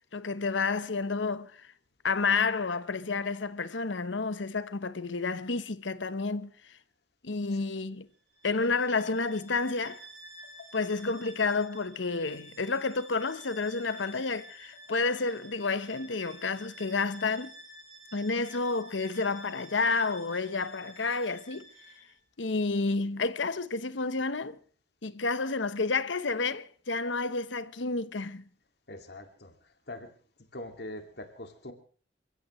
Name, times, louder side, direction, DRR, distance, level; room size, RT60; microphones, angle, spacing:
voice 1, 0.1-1.6 2.0-6.5 7.2-8.1 8.4-10.0 10.7-17.5 18.1-21.7 22.4-24.6 25.0-28.4, left 4 dB, 80° left, 1.0 m, -30 dB
Bowed string instrument, 8.3-22.2, right 1 dB, 85° right, 6.1 m, -51 dB
voice 2, 28.9-29.5 29.9-30.1 30.5-31.7, left 1 dB, 60° left, 2.3 m, -43 dB
28.5 x 15.5 x 3.1 m
head